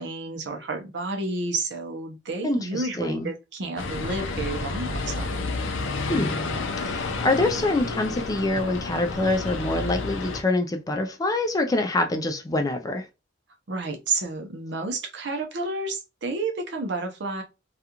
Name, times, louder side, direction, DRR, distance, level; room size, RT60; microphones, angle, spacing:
voice 1, 0.0-5.4 13.7-17.4, right 3 dB, 65° right, 0.7 m, -30 dB
voice 2, 2.4-3.3 6.1-6.3 6.8-13.1, left 2 dB, 20° left, 0.3 m, -25 dB
sound 1, 3.8-10.4, left 3 dB, 90° left, 0.5 m, -30 dB
2.4 x 2.3 x 2.8 m
head